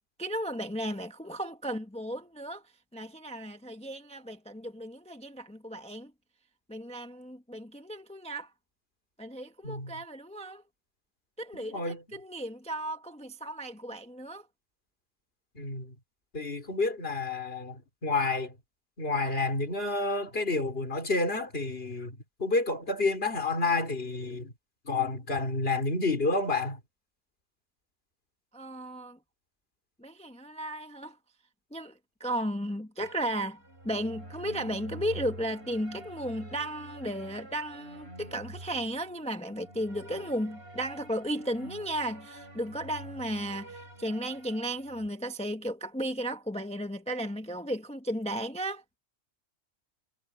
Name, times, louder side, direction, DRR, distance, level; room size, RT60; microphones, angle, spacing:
voice 1, 0.2-2.6 2.9-6.1 6.7-8.5 9.2-10.6 11.4-14.5 28.5-29.2 30.0-31.2 31.7-48.8, right 1 dB, 5° left, 0.9 m, -35 dB
voice 2, 11.7-12.0 15.6-15.9 16.3-18.5 19.0-24.5 24.9-26.8, left 3 dB, 45° left, 4.0 m, -29 dB
sound 1, 33.0-45.1, right 1 dB, 50° right, 7.7 m, -47 dB
omnidirectional pair, 1.4 m